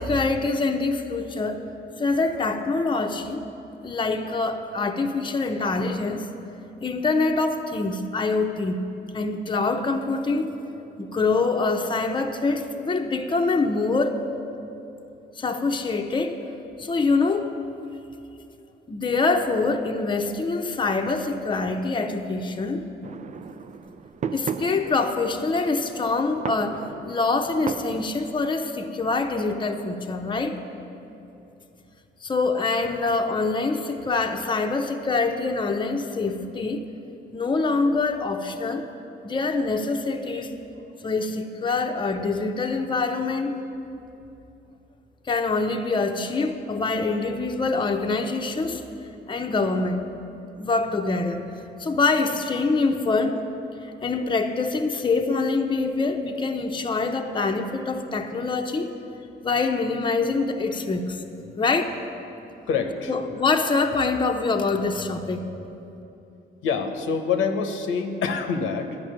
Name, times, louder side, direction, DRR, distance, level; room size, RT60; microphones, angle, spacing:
voice 1, 0.0-1.6 2.0-3.4 3.8-6.3 6.8-8.8 9.1-10.6 11.0-14.2 15.4-16.4 16.8-17.5 18.9-22.9 24.3-30.6 32.2-36.8 37.3-38.8 39.2-40.6 41.0-43.6 45.3-48.8 49.3-50.0 50.6-51.5 51.8-53.4 53.8-59.0 59.4-61.2 61.6-62.0 63.1-65.4, left 3 dB, 25° left, 4 dB, 0.8 m, -25 dB
sound 1, 23.0-28.1, right 7 dB, 35° right, 0.4 m, -35 dB
voice 2, 62.7-63.1 66.6-69.0, left 5 dB, 85° left, 6 dB, 1.0 m, -26 dB
11.0 x 6.1 x 8.7 m, 2.8 s
cardioid pair, 90°, 20 cm